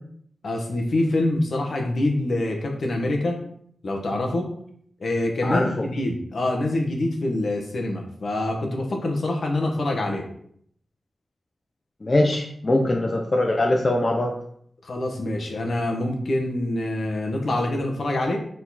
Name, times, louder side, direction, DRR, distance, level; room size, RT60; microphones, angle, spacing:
voice 1, 0.4-3.4 3.8-4.5 5.0-10.3 14.8-18.4, left 1 dB, 60° left, 2 dB, 1.3 m, -25 dB
voice 2, 12.0-14.3, left 1 dB, 30° left, 1 dB, 0.7 m, -21 dB
7.0 x 4.0 x 4.2 m, 0.66 s
wide cardioid pair, 130°, 0 cm